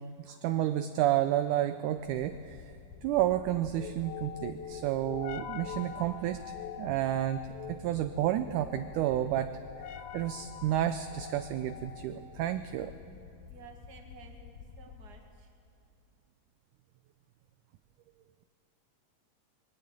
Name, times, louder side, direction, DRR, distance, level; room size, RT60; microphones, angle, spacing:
voice 1, 0.2-2.7 3.0-7.4 7.7-9.5 9.8-12.9, right 12 dB, 80° right, 9 dB, 1.9 m, -31 dB
sound 1, 2.0-15.3, left 8 dB, 70° left, 2.3 m, -45 dB
voice 2, 13.5-15.5, right 5 dB, 35° right, 2 dB, 2.0 m, -54 dB
21.5 x 17.0 x 8.8 m, 2.5 s
omnidirectional pair, 4.1 m